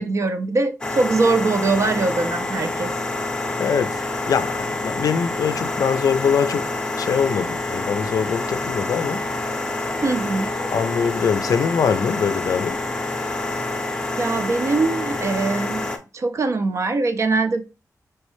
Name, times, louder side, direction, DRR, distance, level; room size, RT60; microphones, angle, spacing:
voice 1, 0.0-2.9 10.0-10.5 14.2-15.9 16.1-17.6, right 3 dB, 55° right, 0.5 m, -22 dB
sound 1, 0.8-16.0, left 2 dB, 15° left, 0.6 m, -27 dB
voice 2, 3.6-6.7 7.0-9.2 10.7-12.8, left 6 dB, 75° left, 0.4 m, -23 dB
4.4 x 3.1 x 3.1 m
wide cardioid pair, 160°, 6 cm